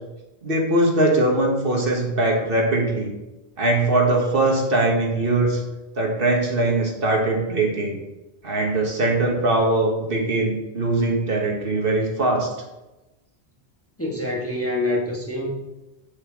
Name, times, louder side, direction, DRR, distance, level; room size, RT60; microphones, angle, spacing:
voice 1, 0.4-3.1 3.6-5.6 6.0-8.0 8.4-12.5, right 2 dB, 55° right, 0 dB, 1.6 m, -21 dB
voice 2, 14.0-15.5, left 1 dB, 15° left, -2 dB, 1.1 m, -26 dB
8.0 x 6.7 x 3.7 m, 1.0 s
omnidirectional pair, 1.1 m